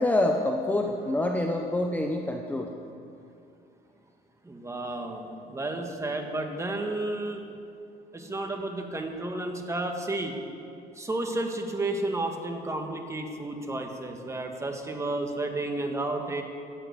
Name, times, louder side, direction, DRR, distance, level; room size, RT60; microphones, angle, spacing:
voice 1, 0.0-2.7, left 1 dB, 10° left, 2 dB, 0.9 m, -26 dB
voice 2, 4.4-7.4 8.1-10.4 10.9-16.4, right 2 dB, 15° right, 3 dB, 1.7 m, -32 dB
14.0 x 9.0 x 8.3 m, 2.5 s
cardioid pair, 110°, 17 cm